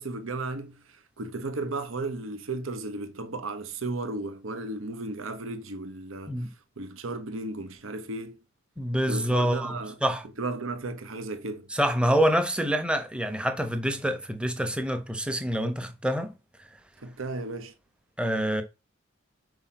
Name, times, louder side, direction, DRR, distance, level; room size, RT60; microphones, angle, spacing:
voice 1, 0.0-6.5 6.8-8.4 9.1-10.0 10.4-11.7 17.0-17.7, right 2 dB, 70° right, 0.9 m, -34 dB
voice 2, 8.8-9.7 10.0-10.2 11.7-16.3 18.2-18.6, equal, 5° right, 0.9 m, -26 dB
5.6 x 4.8 x 5.8 m
head